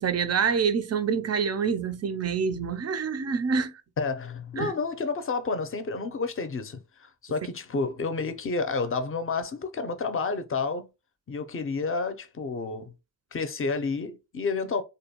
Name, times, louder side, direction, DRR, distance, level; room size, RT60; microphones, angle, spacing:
voice 1, 0.0-3.7 4.6-4.7, right 6 dB, 40° right, 0.4 m, -26 dB
voice 2, 4.0-10.9 11.3-12.9 13.3-14.8, left 4 dB, 30° left, 0.5 m, -30 dB
2.6 x 2.2 x 2.8 m
cardioid pair, 55°, 41 cm